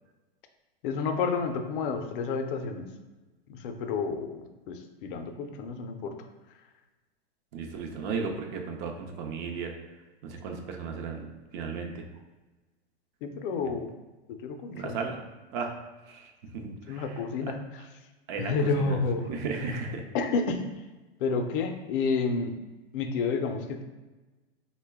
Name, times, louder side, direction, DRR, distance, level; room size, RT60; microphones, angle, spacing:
voice 1, 0.8-2.9 3.5-6.1 13.2-13.9 14.3-15.0 16.9-17.8 18.4-19.3 20.1-20.6 21.2-22.5 22.9-23.8, left 4 dB, 55° left, 6 dB, 0.5 m, -30 dB
voice 2, 7.5-9.7 10.2-11.3 11.5-12.1 14.7-15.2 15.5-15.7 16.1-17.1 18.3-19.0 19.3-20.0, right 5 dB, 45° right, 3 dB, 0.6 m, -35 dB
3.8 x 2.2 x 3.4 m, 1.2 s
hypercardioid pair, 125°, 31 cm